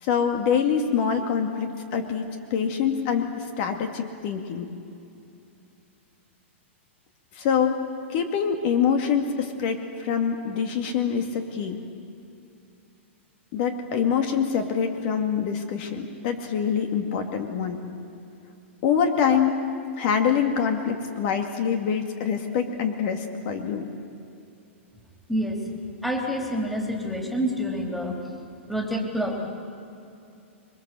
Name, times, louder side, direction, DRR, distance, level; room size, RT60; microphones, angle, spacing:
voice 1, 0.0-4.7 7.3-7.8 8.1-11.8 13.5-17.8 18.8-19.7 20.0-23.9, left 7 dB, 45° left, 5 dB, 2.3 m, -25 dB
voice 2, 25.3-25.6 26.0-28.2 28.7-29.5, equal, ahead, 0 dB, 3.5 m, -27 dB
27.5 x 23.0 x 7.8 m, 2.6 s
hypercardioid pair, 140°, 7 cm